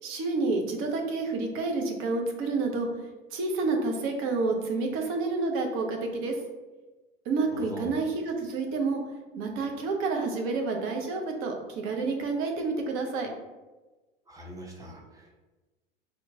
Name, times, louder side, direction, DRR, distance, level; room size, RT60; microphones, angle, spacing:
voice 1, 0.0-2.9 3.3-6.3 7.3-9.0 9.3-13.3, right 3 dB, 45° right, 3 dB, 0.7 m, -29 dB
voice 2, 7.5-8.0 14.3-15.4, right 1 dB, 10° right, -2 dB, 0.7 m, -42 dB
3.0 x 2.2 x 3.8 m, 1.2 s
figure-of-eight pair, 80°, 29 cm